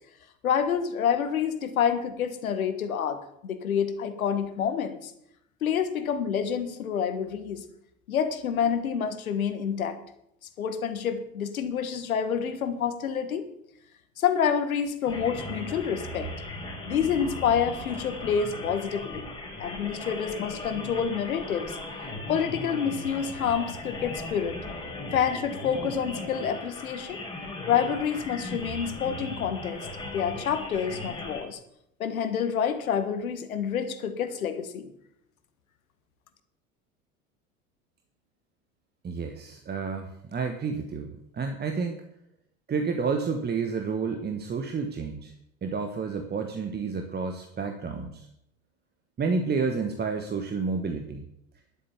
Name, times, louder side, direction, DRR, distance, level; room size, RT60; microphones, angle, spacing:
voice 1, 0.4-5.1 5.6-7.6 8.1-10.0 10.6-13.4 14.2-16.3 16.8-19.2 19.6-21.8 22.3-24.6 25.1-27.2 27.7-29.8 30.1-31.6 32.0-34.9, left 7 dB, 75° left, 10 dB, 1.6 m, -28 dB
sound 1, 15.1-31.4, left 2 dB, 10° left, 4.5 m, -37 dB
voice 2, 39.0-42.0 42.7-45.3 45.6-48.3 49.2-51.3, right 5 dB, 25° right, 5 dB, 1.4 m, -30 dB
11.5 x 8.4 x 7.2 m, 0.76 s
figure-of-eight pair, 75°, 42 cm